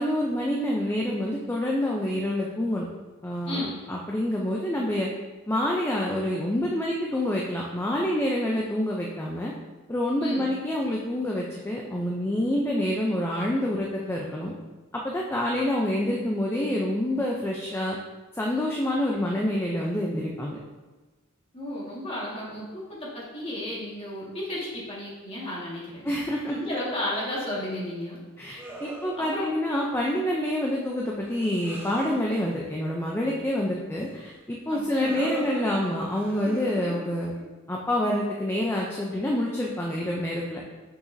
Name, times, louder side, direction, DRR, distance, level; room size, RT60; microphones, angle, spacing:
voice 1, 0.0-2.9 3.2-5.1 5.5-9.5 9.9-14.5 15.0-18.0 18.3-20.6 26.0-26.6 28.4-37.3 37.7-40.6, left 1 dB, 10° left, -2 dB, 0.5 m, -27 dB
voice 2, 3.5-3.8 10.2-10.5 21.5-26.1 26.5-28.2 29.2-29.5 34.7-35.3, left 1 dB, 25° left, -6 dB, 1.8 m, -33 dB
sound 1, 28.6-29.5 30.1-30.6 30.9-32.2 34.7-37.4, right 2 dB, 10° right, 0.8 m, -40 dB
6.3 x 5.9 x 2.6 m, 1.2 s
head